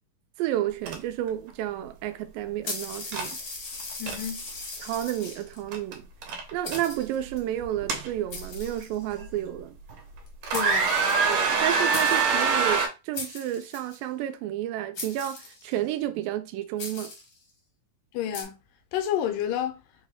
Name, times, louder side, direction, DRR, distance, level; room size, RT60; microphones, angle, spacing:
voice 1, 0.4-3.4 4.8-6.1 6.5-9.8 11.3-17.1, right 12 dB, 85° right, 2.3 m, -31 dB
sound 1, 0.9-1.0 1.3-1.5 3.1-3.3 3.8-4.2 5.7-5.9 6.2-6.8 7.6-8.6 9.2-9.3 9.9-10.2 10.4-12.9, right 5 dB, 65° right, 1.8 m, -24 dB
sound 2, 2.6-5.6 6.3-6.4 6.6-7.4 8.3-9.3 10.3-10.4 10.5-11.6 11.9-12.4 13.1-14.0 14.9-15.8 16.8-17.4 18.3-18.4, left 3 dB, 60° left, 1.0 m, -39 dB
voice 2, 4.0-4.5 10.5-10.9 18.1-18.6 18.9-19.8, left 10 dB, 80° left, 2.0 m, -29 dB
5.2 x 2.2 x 3.5 m
omnidirectional pair, 3.9 m